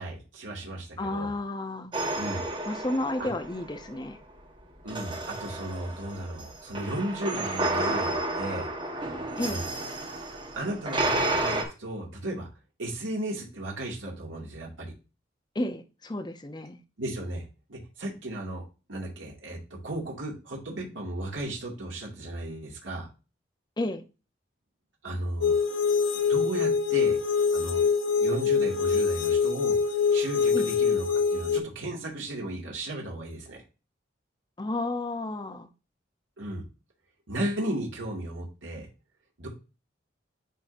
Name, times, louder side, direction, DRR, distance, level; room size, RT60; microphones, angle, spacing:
voice 1, 0.0-1.3 2.2-2.4 3.2-3.3 4.8-8.7 9.5-9.7 10.6-12.5 12.8-14.9 17.0-23.1 25.0-25.6 26.3-27.2 27.5-27.9 28.2-31.1 31.3-33.6 36.4-36.6 37.3-38.9 39.4-39.5, right 1 dB, 85° right, 2.1 m, -35 dB
voice 2, 1.0-1.9 2.7-4.2 9.4-9.6 15.5-16.8 23.8-24.0 30.5-30.7 34.6-35.7, left 2 dB, 20° left, 0.7 m, -32 dB
sound 1, 1.9-3.9 4.9-11.6, right 2 dB, 25° right, 1.2 m, -31 dB
sound 2, 25.4-31.6, left 5 dB, 90° left, 0.7 m, -24 dB
10.0 x 3.7 x 2.6 m
head